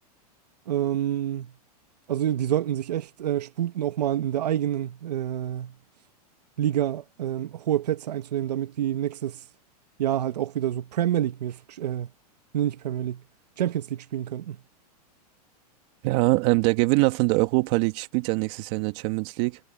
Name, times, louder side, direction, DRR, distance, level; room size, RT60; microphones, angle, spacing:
voice 1, 0.7-1.5 2.1-5.7 6.6-9.4 10.0-12.1 12.5-13.2 13.6-14.6, right 11 dB, 85° right, 1.2 m, -27 dB
voice 2, 16.0-19.6, right 23 dB, 45° right, 1.9 m, -23 dB
supercardioid pair, 145°, 20 cm